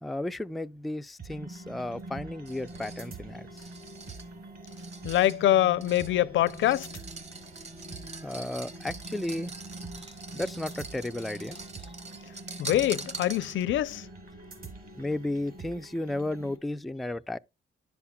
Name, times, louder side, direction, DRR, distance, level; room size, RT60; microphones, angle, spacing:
voice 1, 0.0-3.7 8.2-9.5 9.9-11.6 15.0-17.4, left 1 dB, ahead, 0.3 m, -34 dB
sound 1, 1.2-16.6, right 2 dB, 50° right, 4.0 m, -44 dB
sound 2, 2.4-13.8, right 3 dB, 35° right, 1.3 m, -44 dB
voice 2, 5.0-6.9 12.6-14.1, left 13 dB, 75° left, 0.5 m, -24 dB
10.5 x 7.0 x 2.3 m
cardioid pair, 90°, 20 cm